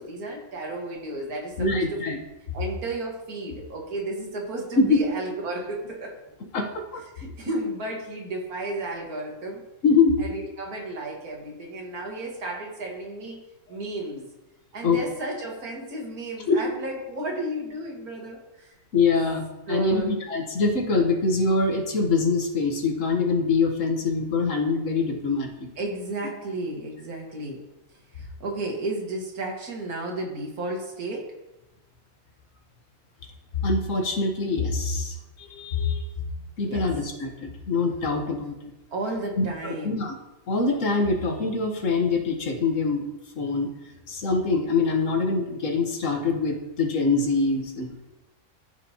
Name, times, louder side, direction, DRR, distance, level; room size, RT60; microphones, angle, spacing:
voice 1, 0.0-2.0 2.5-6.2 7.2-9.6 10.2-13.4 13.7-14.3 14.7-18.7 19.7-20.2 25.8-27.6 28.2-31.3 36.6-36.9 38.9-40.1, right 2 dB, 80° right, 0 dB, 2.0 m, -33 dB
voice 2, 1.6-2.2 4.8-5.0 6.5-7.0 9.8-10.2 14.8-15.0 16.5-16.7 18.9-25.7 33.6-36.1 36.6-38.7 39.4-40.1 40.5-43.0 43.3-43.7 44.1-48.0, left 4 dB, 60° left, 4 dB, 1.3 m, -24 dB
14.0 x 4.9 x 2.8 m, 0.97 s
omnidirectional pair, 1.5 m